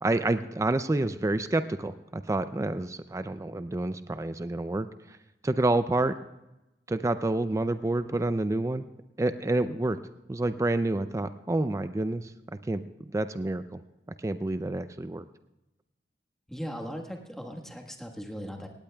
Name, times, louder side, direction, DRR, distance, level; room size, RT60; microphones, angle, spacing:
voice 1, 0.0-5.2 5.4-6.1 6.9-8.9 9.2-10.0 10.3-12.3 12.7-12.8 13.1-13.8 14.2-15.2, right 2 dB, 15° right, 11 dB, 0.4 m, -28 dB
voice 2, 16.5-18.7, equal, 5° left, 2 dB, 1.4 m, -38 dB
18.5 x 17.5 x 2.3 m, 0.97 s
head